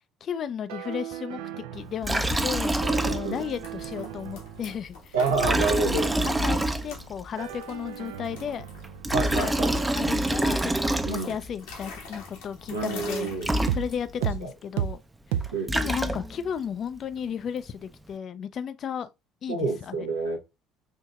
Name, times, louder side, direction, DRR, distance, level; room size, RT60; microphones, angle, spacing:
voice 1, 0.2-5.2 5.6-5.7 6.3-8.7 9.2-15.0 15.7-19.1 19.4-20.1, left 8 dB, 50° left, 0.4 m, -34 dB
sound 1, 0.7-2.4 2.8-4.9 5.2-7.1 7.4-11.1 13.7-13.9 14.2-14.4 14.8-15.0 15.3-15.5, right 10 dB, 70° right, 0.3 m, -36 dB
Liquid, 2.0-3.5 3.8-3.9 5.3-7.2 8.8-11.5 13.1-13.2 13.4-14.2 15.4-16.5, right 1 dB, 15° right, 0.5 m, -26 dB
sound 2, 2.3-14.3, left 3 dB, 80° left, 1.2 m, -45 dB
voice 2, 5.1-6.1 9.1-9.7 11.0-11.4 12.7-13.5 14.4-14.5 15.5-15.9 19.5-20.4, right 3 dB, 85° right, 0.7 m, -28 dB
4.5 x 2.7 x 2.3 m
hypercardioid pair, 60°, 0 cm